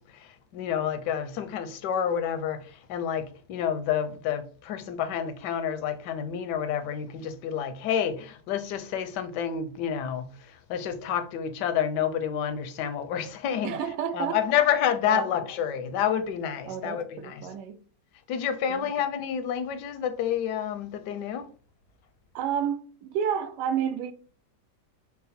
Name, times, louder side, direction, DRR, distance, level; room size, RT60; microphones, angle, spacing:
voice 1, 0.1-10.3 10.7-13.8 14.1-17.5 18.3-21.4, left 9 dB, 85° left, 1.2 m, -29 dB
voice 2, 13.6-14.4 15.0-15.3 16.7-17.8 18.7-18.9 22.3-24.1, right 8 dB, 90° right, 1.2 m, -30 dB
4.8 x 2.0 x 4.1 m
omnidirectional pair, 1.8 m